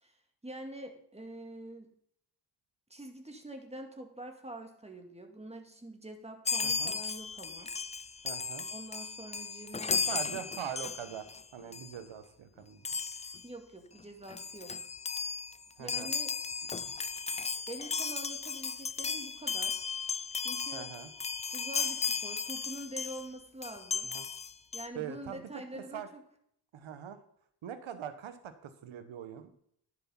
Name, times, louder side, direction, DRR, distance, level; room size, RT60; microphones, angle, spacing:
voice 1, 0.4-1.9 2.9-7.7 8.7-10.0 13.4-14.9 15.8-16.3 17.7-19.8 20.4-20.9 21.5-24.1 24.7-26.2, right 1 dB, 15° right, 4 dB, 2.3 m, -45 dB
Chime, 6.4-11.4 11.7-11.9 12.8-13.4 14.0-14.1 14.3-23.3 23.6-24.9, left 5 dB, 15° left, 0.3 m, -35 dB
voice 2, 6.6-6.9 8.2-8.6 9.9-11.3 11.5-12.8 15.8-16.1 20.7-21.1 24.0-24.2 24.9-26.1 26.7-27.2 27.6-29.5, right 9 dB, 75° right, 10 dB, 1.3 m, -42 dB
10.5 x 6.6 x 5.6 m, 0.68 s
cardioid pair, 70°, 48 cm